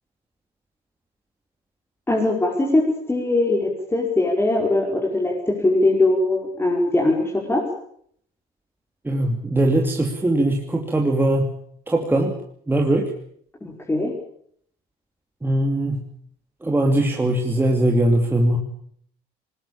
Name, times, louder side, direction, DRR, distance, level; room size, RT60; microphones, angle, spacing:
voice 1, 2.1-7.6 13.6-14.1, left 2 dB, 15° left, -1 dB, 5.2 m, -21 dB
voice 2, 9.0-11.5 11.9-12.4 12.7-13.1 15.4-16.1 16.6-18.6, right 1 dB, 10° right, 1 dB, 2.8 m, -20 dB
20.0 x 19.5 x 8.7 m, 0.64 s
cardioid pair, 110°, 17 cm